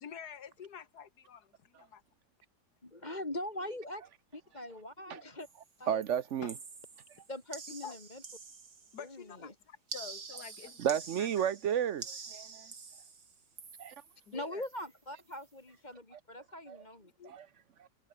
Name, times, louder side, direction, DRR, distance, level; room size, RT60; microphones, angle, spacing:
voice 1, 0.0-2.0 6.4-6.5 7.7-8.0 8.9-11.5 14.3-14.7 17.2-17.3, left 8 dB, 60° left, 2.2 m, -48 dB
voice 2, 2.8-4.0 4.3-5.5 5.8-6.0 7.3-8.2 9.0-9.5 14.3-17.1, left 1 dB, 25° left, 3.0 m, -42 dB
sound 1, 5.4-5.7 6.0-9.1 9.9-14.2 14.6-14.9 15.2-15.4, right 5 dB, 75° right, 3.5 m, -48 dB
voice 3, 5.9-6.5 10.8-12.7 13.8-13.9 16.7-16.8, right 9 dB, 60° right, 0.8 m, -32 dB
omnidirectional pair, 1.9 m